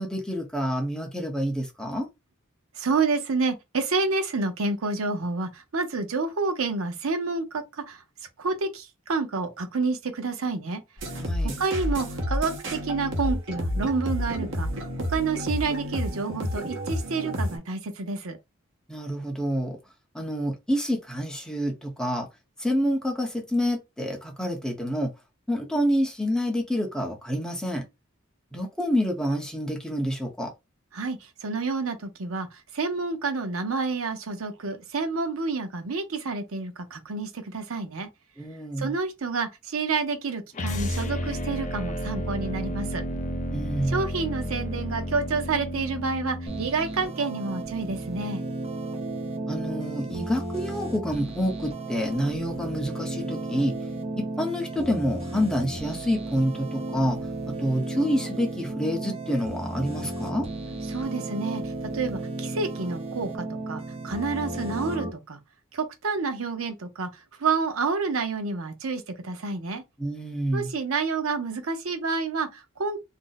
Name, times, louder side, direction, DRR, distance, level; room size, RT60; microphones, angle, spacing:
voice 1, 0.0-2.1 11.1-11.5 18.9-19.8 20.1-22.3 22.6-25.1 25.5-27.8 28.5-30.5 38.4-38.9 43.5-44.0 49.5-53.7 54.2-57.2 57.5-60.5 70.0-70.7, equal, 5° left, 0.7 m, -28 dB
voice 2, 2.8-8.0 8.4-10.8 11.6-18.4 30.9-38.1 38.8-43.0 43.9-48.4 60.9-61.6 61.9-65.4 65.7-67.1 67.4-69.8 70.5-73.0, right 4 dB, 85° right, 0.7 m, -29 dB
sound 1, 11.0-17.6, equal, 65° right, 1.0 m, -30 dB
sound 2, 40.5-46.7, equal, 35° left, 0.5 m, -31 dB
sound 3, 46.5-65.1, right 2 dB, 30° right, 0.6 m, -34 dB
2.6 x 2.0 x 3.8 m
head